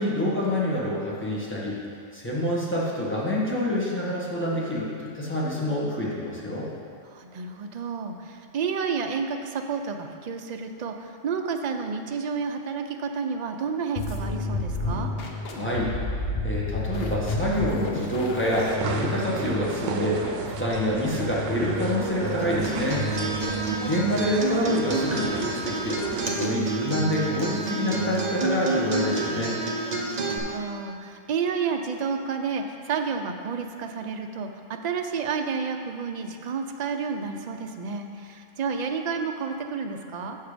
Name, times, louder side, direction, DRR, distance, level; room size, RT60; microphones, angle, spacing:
voice 1, 0.0-1.8 2.1-6.7 15.5-15.9 16.4-20.3 20.6-23.1 23.8-26.0 26.3-29.6, left 1 dB, 10° left, -7 dB, 1.4 m, -27 dB
voice 2, 7.0-15.1 23.4-24.0 30.1-40.4, right 5 dB, 55° right, 5 dB, 0.5 m, -31 dB
sound 1, 14.0-23.7, left 2 dB, 55° left, 1.0 m, -32 dB
sound 2, 18.5-26.3, right 5 dB, 85° right, 1.0 m, -34 dB
Acoustic guitar, 22.4-30.4, right 3 dB, 40° right, 0.9 m, -29 dB
7.0 x 6.5 x 5.1 m, 2.3 s
omnidirectional pair, 1.3 m